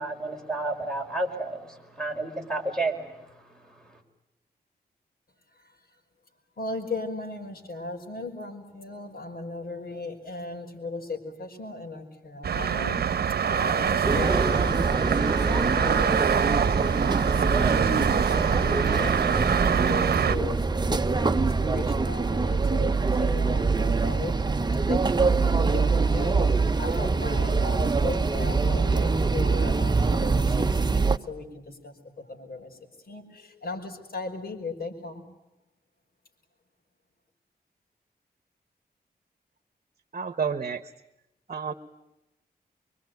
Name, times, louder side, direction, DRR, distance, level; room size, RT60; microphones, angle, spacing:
voice 1, 0.0-3.4, right 2 dB, 5° left, 4 dB, 5.1 m, -31 dB
voice 2, 6.6-13.0 13.5-24.4 24.9-30.7 30.9-32.7 33.1-35.2, left 3 dB, 65° left, 3 dB, 5.5 m, -37 dB
sound 1, 12.4-20.4, right 7 dB, 80° right, 0.9 m, -25 dB
sound 2, 14.0-31.2, right 4 dB, 25° right, 1.0 m, -24 dB
voice 3, 40.1-40.8 41.5-41.7, right 6 dB, 50° right, 12 dB, 1.2 m, -29 dB
25.0 x 24.0 x 9.4 m, 0.90 s
wide cardioid pair, 85°, 16 cm